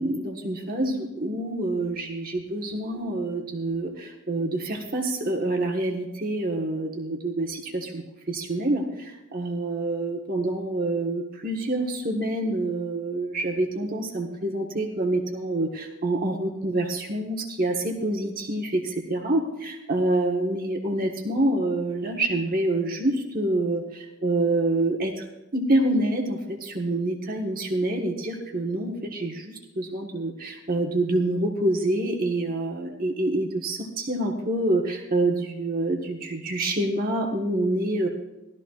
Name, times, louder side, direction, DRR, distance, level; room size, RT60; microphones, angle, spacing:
voice 1, 0.0-25.2 25.5-38.1, right 2 dB, 40° right, 0 dB, 1.4 m, -27 dB
18.5 x 13.0 x 2.4 m, 1.0 s
head